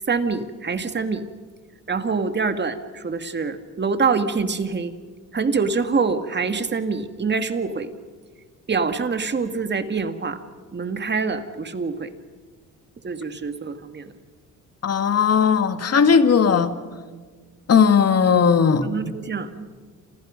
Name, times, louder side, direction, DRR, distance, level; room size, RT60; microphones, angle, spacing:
voice 1, 0.1-1.3 1.9-4.9 5.3-7.9 8.7-10.4 10.7-12.1 13.0-14.1 18.8-19.9, right 4 dB, 30° right, 2.2 m, -25 dB
voice 2, 14.8-16.7 17.7-18.9, left 6 dB, 45° left, 2.1 m, -17 dB
30.0 x 27.5 x 5.3 m
cardioid pair, 95°, 34 cm